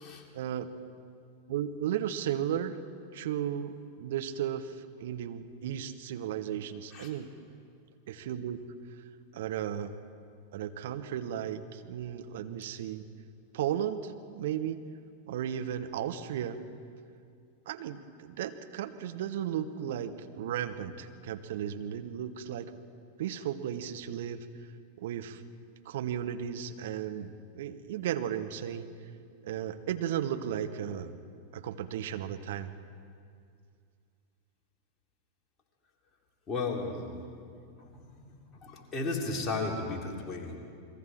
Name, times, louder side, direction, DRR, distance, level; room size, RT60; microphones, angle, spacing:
voice 1, 0.3-0.7 1.5-2.8 3.1-7.3 8.1-8.6 9.3-9.9 10.5-13.0 13.5-14.8 15.3-16.7 17.7-22.7 23.2-24.5 25.0-25.4 25.8-28.9 29.4-31.2 31.5-32.7, right 10 dB, 55° right, 8 dB, 1.1 m, -35 dB
voice 2, 36.5-37.3 37.8-40.6, left 3 dB, 25° left, -1 dB, 3.4 m, -35 dB
29.5 x 22.0 x 4.5 m, 2.3 s
figure-of-eight pair, 90°, 0 cm